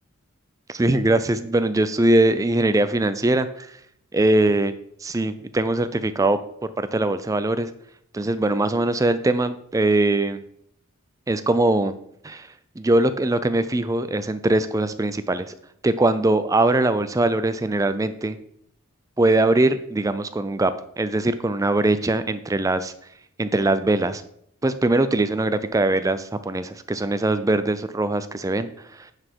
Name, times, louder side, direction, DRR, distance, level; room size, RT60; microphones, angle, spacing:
voice 1, 0.7-3.8 4.1-4.7 5.0-7.7 8.1-10.4 11.3-11.9 12.2-12.5 12.8-15.5 15.8-18.4 19.2-22.9 23.4-24.2 24.6-29.1, right 2 dB, 15° right, 12 dB, 0.4 m, -21 dB
9.5 x 4.2 x 4.6 m, 0.70 s
head